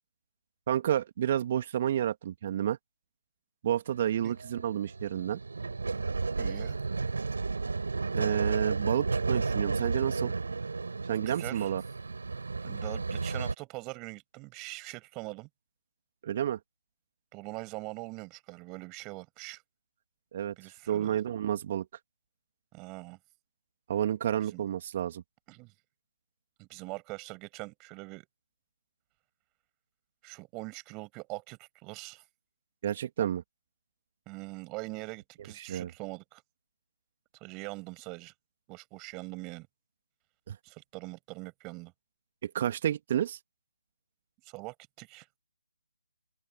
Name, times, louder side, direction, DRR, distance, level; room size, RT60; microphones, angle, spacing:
voice 1, 0.7-2.8 3.6-5.4 8.1-10.3 11.1-11.8 16.2-16.6 20.3-20.5 20.9-21.9 23.9-25.2 32.8-33.4 35.6-35.9 40.5-40.6 42.4-43.4, right 10 dB, 35° right, 2.5 m, -30 dB
sound 1, 3.9-13.5, right 4 dB, 65° right, 6.6 m, -33 dB
voice 2, 6.4-6.8 11.3-11.7 12.6-15.5 17.3-19.6 20.6-21.2 22.7-23.2 24.5-24.6 25.5-25.7 26.6-28.3 30.2-32.2 34.3-36.4 37.4-38.3 38.7-39.7 40.6-41.9 44.4-45.3, right 26 dB, 15° right, 6.5 m, -42 dB
open air
figure-of-eight pair, 150°, 0 cm